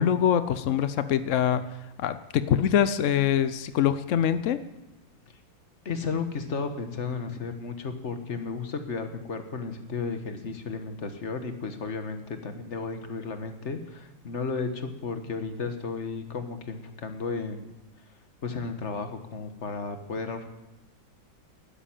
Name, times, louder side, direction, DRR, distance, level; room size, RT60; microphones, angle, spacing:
voice 1, 0.0-1.7 2.0-4.6, left 9 dB, 80° left, 13 dB, 0.6 m, -24 dB
voice 2, 5.8-17.7 18.4-20.4, left 4 dB, 40° left, 7 dB, 1.5 m, -33 dB
12.5 x 11.0 x 8.8 m, 0.99 s
omnidirectional pair, 2.1 m